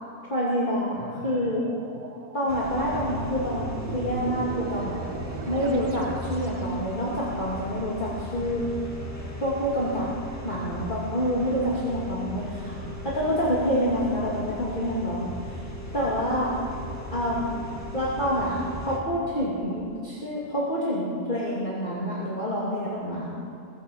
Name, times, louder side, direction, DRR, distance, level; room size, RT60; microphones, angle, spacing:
voice 1, 0.3-1.6 2.3-5.0 5.5-8.6 9.4-10.1 10.4-12.8 13.0-15.7 15.9-16.6 17.1-17.6 17.9-18.5 18.8-23.3, equal, 35° left, -7 dB, 2.7 m, -27 dB
sound 1, 0.9-6.7, right 6 dB, 85° right, 1.5 m, -40 dB
sound 2, 2.5-19.0, equal, 10° left, 2.0 m, -37 dB
21.5 x 8.1 x 7.2 m, 2.7 s
omnidirectional pair, 1.5 m